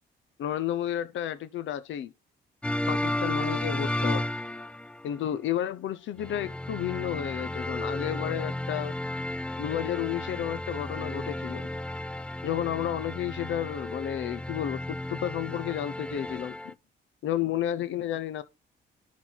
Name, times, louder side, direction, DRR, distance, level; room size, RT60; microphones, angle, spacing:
voice 1, 0.4-2.1 2.9-4.3 5.0-9.0 9.6-11.7 12.4-16.6 17.2-18.4, left 11 dB, 75° left, 0.9 m, -32 dB
sound 1, 2.6-5.1 6.2-16.7, left 1 dB, 5° left, 0.5 m, -33 dB
10.5 x 4.2 x 4.1 m
cardioid pair, 90°, 20 cm